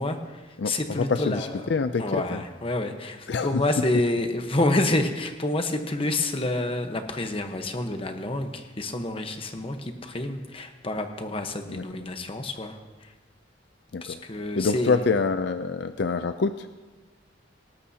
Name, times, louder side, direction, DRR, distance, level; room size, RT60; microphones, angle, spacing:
voice 1, 0.0-1.6 2.0-13.1 14.0-15.1, left 2 dB, 30° left, 6 dB, 1.1 m, -28 dB
voice 2, 0.6-2.0 2.3-2.4 3.3-3.6 11.7-11.8 13.9-14.2 14.6-16.7, left 4 dB, 65° left, 10 dB, 0.5 m, -26 dB
19.0 x 18.5 x 2.8 m, 1.3 s
head